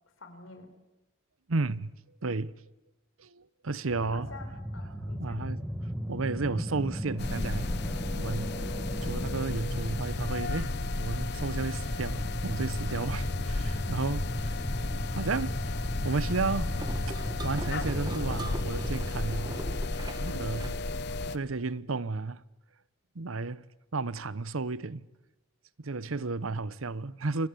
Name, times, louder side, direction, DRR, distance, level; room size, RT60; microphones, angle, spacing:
voice 1, 0.2-0.7 4.0-5.4 14.5-15.0 20.3-20.5, left 3 dB, 75° left, 4.8 m, -48 dB
voice 2, 1.5-1.9 2.2-2.5 3.2-4.3 5.2-5.6 6.1-7.7 8.2-8.6 9.0-14.5 14.9-15.6 16.0-16.8 17.1-19.6 20.2-20.7 21.3-22.4 23.1-23.6 23.9-25.1 25.8-27.5, right 3 dB, 90° right, 0.9 m, -33 dB
sound 1, 3.9-19.3, equal, 5° right, 1.9 m, -37 dB
sound 2, 7.2-21.4, left 2 dB, 55° left, 1.0 m, -33 dB
sound 3, 16.8-21.7, right 1 dB, 20° right, 1.7 m, -42 dB
29.0 x 24.5 x 8.5 m
head